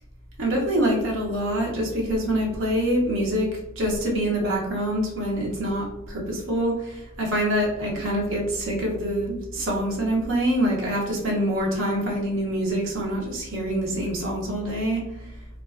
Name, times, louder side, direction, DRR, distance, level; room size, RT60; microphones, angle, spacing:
voice 1, 0.4-3.5 3.8-15.0, right 1 dB, 70° right, -1 dB, 0.7 m, -25 dB
2.4 x 2.2 x 2.3 m, 0.91 s
head